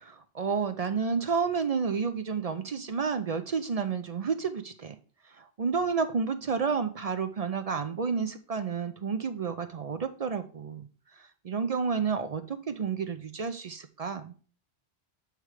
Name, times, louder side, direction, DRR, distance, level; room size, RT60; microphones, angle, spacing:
voice 1, 0.0-4.9 5.4-10.9 11.4-14.3, right 5 dB, 50° right, 9 dB, 0.5 m, -30 dB
7.8 x 3.3 x 4.9 m, 0.39 s
omnidirectional pair, 1.1 m